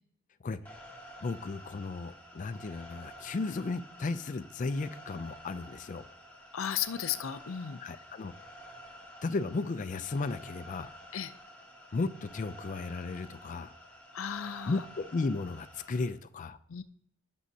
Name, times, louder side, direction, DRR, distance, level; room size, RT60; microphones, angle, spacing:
sound 1, 0.7-16.1, equal, 10° left, 2.0 m, -50 dB
voice 1, 1.2-6.1 7.8-8.3 9.2-10.9 11.9-13.8 14.7-16.6, left 3 dB, 40° left, 11 dB, 0.4 m, -35 dB
voice 2, 6.5-7.8 11.1-11.3 14.1-14.8 16.7-16.8, left 9 dB, 90° left, 13 dB, 0.5 m, -35 dB
16.5 x 6.3 x 2.8 m, 0.68 s
head